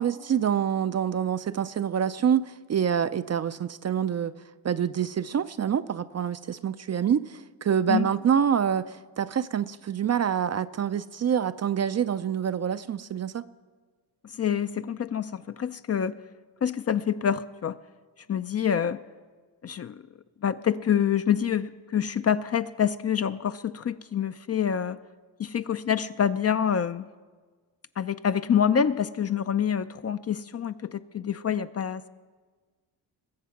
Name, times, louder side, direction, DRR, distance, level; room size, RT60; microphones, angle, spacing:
voice 1, 0.0-4.3 4.6-13.4, right 8 dB, 35° right, 13 dB, 0.4 m, -26 dB
voice 2, 14.3-16.1 16.6-17.8 18.3-19.0 19.6-20.0 20.4-25.0 25.4-27.1 28.0-32.1, left 8 dB, 35° left, 13 dB, 0.4 m, -26 dB
21.0 x 7.4 x 5.8 m, 1.4 s
supercardioid pair, 65°, 47 cm